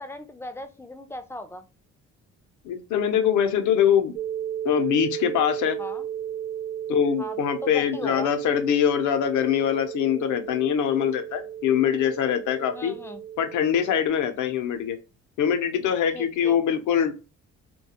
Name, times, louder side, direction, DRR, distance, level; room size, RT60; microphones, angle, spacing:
voice 1, 0.0-1.6 5.8-6.1 7.2-7.4 7.6-8.3 12.7-13.2 16.1-16.6, left 1 dB, 10° left, 8 dB, 0.3 m, -37 dB
voice 2, 2.6-4.1 4.6-5.8 6.9-12.9 13.4-15.0 15.4-17.2, left 9 dB, 75° left, 8 dB, 0.6 m, -23 dB
sound 1, 4.2-14.1, right 10 dB, 55° right, 0.8 m, -34 dB
2.3 x 2.2 x 2.7 m, 0.31 s
cardioid pair, 90°, 30 cm